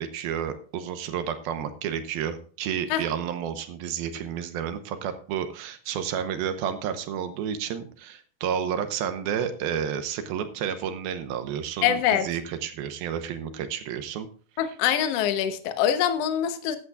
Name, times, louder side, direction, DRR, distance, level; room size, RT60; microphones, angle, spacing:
voice 1, 0.0-14.3 14.7-14.8, right 8 dB, 80° right, 9 dB, 2.7 m, -31 dB
voice 2, 11.8-12.3 14.6-16.8, left 9 dB, 85° left, 8 dB, 1.4 m, -24 dB
15.0 x 11.0 x 2.4 m, 0.42 s
omnidirectional pair, 4.4 m